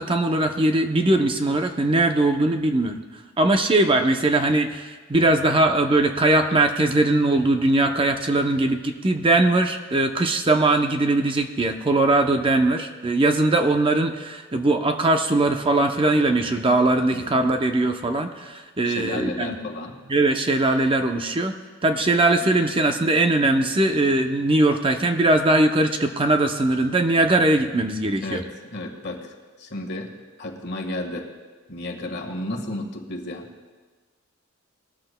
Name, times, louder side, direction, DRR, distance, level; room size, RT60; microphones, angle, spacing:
voice 1, 0.0-3.0 3.4-19.6 20.1-21.5 21.8-28.4, right 2 dB, 25° right, 6 dB, 0.6 m, -20 dB
voice 2, 17.1-17.6 18.8-20.0 28.2-30.1 30.4-31.3 31.7-33.5, left 1 dB, 55° left, 2 dB, 1.5 m, -33 dB
20.0 x 13.5 x 2.2 m, 1.4 s
head